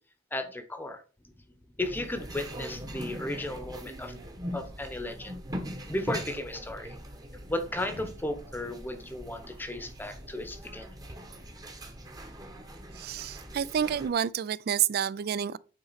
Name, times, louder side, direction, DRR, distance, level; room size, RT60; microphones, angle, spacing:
voice 1, 0.3-1.0 1.8-4.1 4.5-5.4 5.9-7.0 7.5-10.9, left 1 dB, 10° left, 0.8 m, -35 dB
sound 1, 1.8-14.1, equal, 20° right, 1.0 m, -41 dB
voice 2, 12.9-15.6, right 9 dB, 55° right, 0.3 m, -29 dB
8.7 x 4.0 x 4.1 m
head